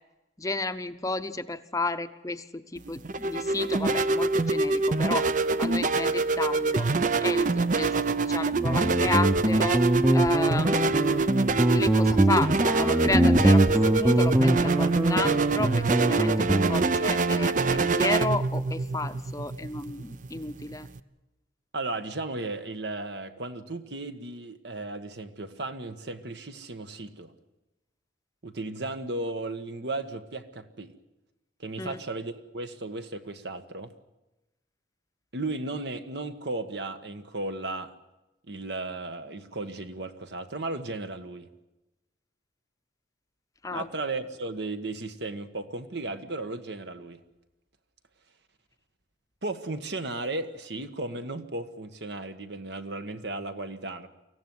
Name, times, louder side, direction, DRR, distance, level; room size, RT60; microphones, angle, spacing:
voice 1, 0.4-5.3 5.6-6.9 7.2-9.8 10.1-11.0 11.7-20.9 31.8-32.0 43.6-43.9, left 3 dB, 20° left, 11 dB, 0.8 m, -32 dB
sound 1, 2.8-21.0, right 3 dB, 45° right, 0.7 m, -25 dB
Guitar, 8.5-17.0, right 1 dB, 15° right, 0.8 m, -23 dB
voice 2, 21.7-27.3 28.4-30.9 31.6-33.9 35.3-37.9 38.5-41.5 43.7-47.2 49.4-54.1, right 2 dB, 70° right, 9 dB, 1.5 m, -35 dB
24.0 x 15.5 x 9.5 m, 1.0 s
head